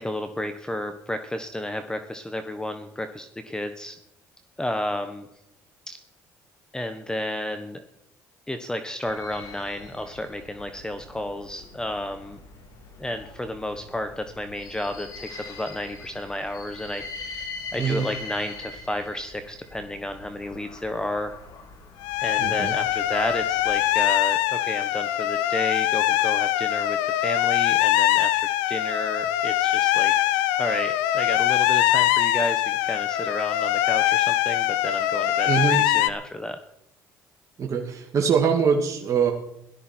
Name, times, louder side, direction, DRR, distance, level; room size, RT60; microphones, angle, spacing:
voice 1, 0.0-3.9 4.6-5.3 5.9-6.0 6.7-7.8 8.5-12.4 13.0-21.4 22.2-30.1 30.6-36.6, left 1 dB, 10° left, 8 dB, 1.2 m, -32 dB
sound 1, 9.0-24.0, left 3 dB, 60° left, 2.8 m, -42 dB
sound 2, 22.0-36.1, left 13 dB, 85° left, 0.7 m, -23 dB
voice 2, 22.4-22.8 35.4-35.8 37.6-39.3, right 6 dB, 45° right, 1 dB, 2.1 m, -23 dB
17.0 x 12.5 x 4.5 m, 0.80 s
supercardioid pair, 75°, 7 cm